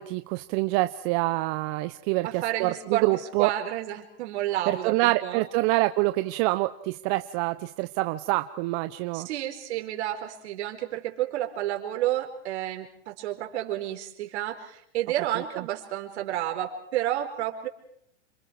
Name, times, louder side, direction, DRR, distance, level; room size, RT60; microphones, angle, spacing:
voice 1, 0.0-3.5 4.7-9.3, right 19 dB, 45° right, 11 dB, 0.9 m, -26 dB
voice 2, 2.2-5.5 9.1-17.7, right 13 dB, 65° right, 4 dB, 4.5 m, -31 dB
28.5 x 26.0 x 4.7 m, 0.69 s
hypercardioid pair, 120°, 35 cm